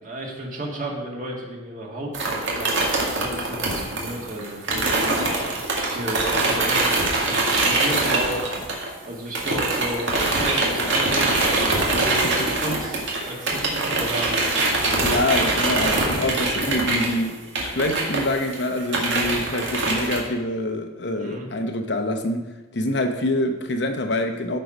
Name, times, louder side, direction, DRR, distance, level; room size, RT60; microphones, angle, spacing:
voice 1, 0.0-2.8 3.1-5.4 5.8-8.5 9.0-11.5 11.8-14.4 21.2-21.5, right 1 dB, 40° right, 2.0 m, -33 dB
sound 1, 2.1-9.1 9.3-20.2, right 2 dB, 65° right, 1.9 m, -23 dB
voice 2, 15.0-24.6, left 1 dB, 55° left, 0.8 m, -26 dB
13.0 x 4.7 x 5.1 m
head